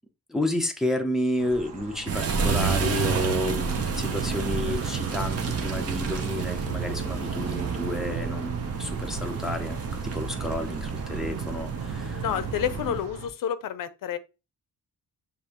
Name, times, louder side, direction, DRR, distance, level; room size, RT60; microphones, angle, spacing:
voice 1, 0.3-12.2, left 1 dB, ahead, 0.5 m, -31 dB
sound 1, 1.4-13.3, right 2 dB, 75° right, 1.2 m, -40 dB
sound 2, 2.1-13.1, right 5 dB, 45° right, 0.7 m, -30 dB
voice 2, 12.0-14.2, left 9 dB, 70° left, 0.6 m, -30 dB
6.8 x 2.6 x 2.9 m
wide cardioid pair, 165°, 34 cm